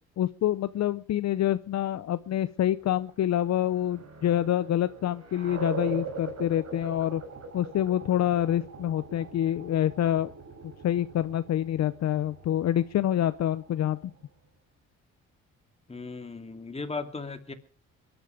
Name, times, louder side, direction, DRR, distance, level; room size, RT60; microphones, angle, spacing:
voice 1, 0.2-7.2 7.5-10.3 10.8-14.1, left 11 dB, 60° left, 14 dB, 0.7 m, -27 dB
sound 1, 2.9-14.3, right 4 dB, 60° right, 6.3 m, -42 dB
voice 2, 15.9-17.5, left 4 dB, 20° left, 7 dB, 2.6 m, -36 dB
22.5 x 11.5 x 5.0 m, 0.39 s
cardioid pair, 90°, 30 cm